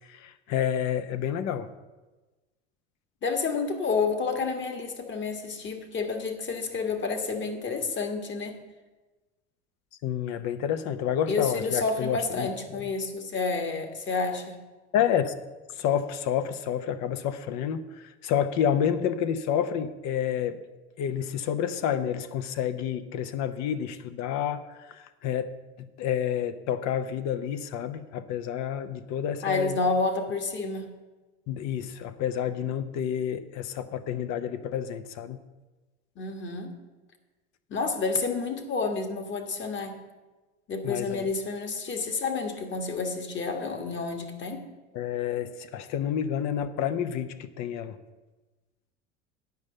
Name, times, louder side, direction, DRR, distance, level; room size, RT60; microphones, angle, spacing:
voice 1, 0.1-1.7 10.0-12.5 14.9-15.3 15.8-20.6 21.0-29.8 31.5-35.4 40.8-41.3 44.9-48.0, left 9 dB, 55° left, 11 dB, 0.8 m, -29 dB
voice 2, 3.2-8.6 11.3-14.6 29.4-30.9 36.2-36.8 37.7-39.9 40.7-44.6, left 4 dB, 35° left, 5 dB, 1.5 m, -29 dB
9.4 x 5.4 x 7.6 m, 1.2 s
hypercardioid pair, 90°, 33 cm